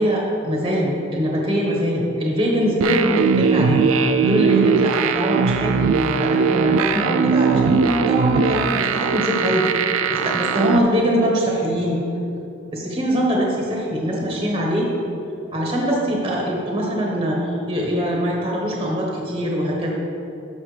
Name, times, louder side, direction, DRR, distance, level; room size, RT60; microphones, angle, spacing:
voice 1, 0.0-3.9 4.2-9.7 10.1-12.0 12.7-14.9 15.5-19.9, equal, 20° right, -3 dB, 1.1 m, -22 dB
sound 1, 2.8-10.8, right 5 dB, 80° right, 0.4 m, -20 dB
12.5 x 5.8 x 3.3 m, 2.9 s
head